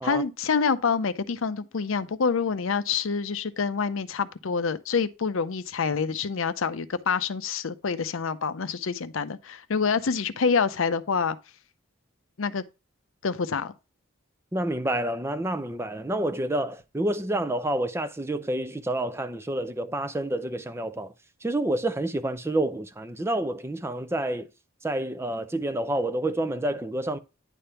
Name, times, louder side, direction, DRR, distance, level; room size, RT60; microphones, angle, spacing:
voice 1, 0.0-11.4 12.4-12.6 13.2-13.7, left 5 dB, 75° left, 0.6 m, -27 dB
voice 2, 14.5-21.1 21.4-24.5 24.8-27.2, right 1 dB, 10° right, 0.4 m, -28 dB
9.9 x 3.5 x 5.5 m
head